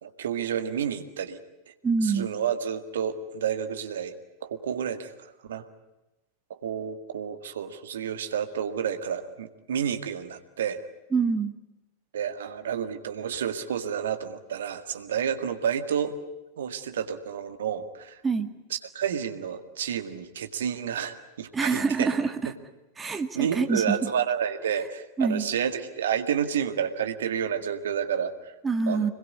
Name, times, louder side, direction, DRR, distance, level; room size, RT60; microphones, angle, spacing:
voice 1, 0.0-1.4 1.7-1.8 2.0-5.6 6.5-10.8 12.1-16.1 16.6-18.2 18.7-22.1 23.4-28.5 28.9-29.1, right 8 dB, 60° right, 7 dB, 2.0 m, -30 dB
voice 2, 1.8-2.3 11.1-11.5 18.2-18.5 21.5-22.5 23.0-24.0 25.2-25.5 28.6-29.1, right 4 dB, 15° right, 7 dB, 1.9 m, -25 dB
27.0 x 21.5 x 9.7 m, 0.98 s
figure-of-eight pair, 90°, 0 cm